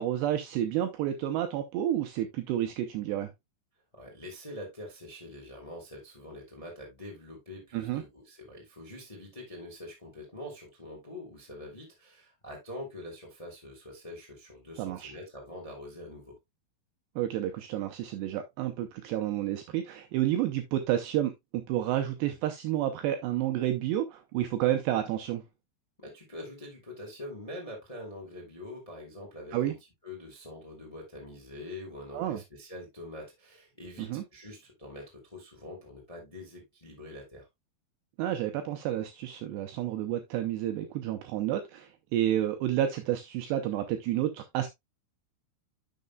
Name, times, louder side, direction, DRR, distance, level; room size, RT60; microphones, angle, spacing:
voice 1, 0.0-3.3 7.7-8.0 14.8-15.1 17.2-25.4 29.5-29.7 32.1-32.4 34.0-34.2 38.2-44.7, right 12 dB, 85° right, 2.4 m, -30 dB
voice 2, 3.9-16.3 26.0-29.8 30.0-37.4, left 1 dB, 55° left, 0.4 m, -44 dB
10.5 x 6.5 x 2.2 m
omnidirectional pair, 5.7 m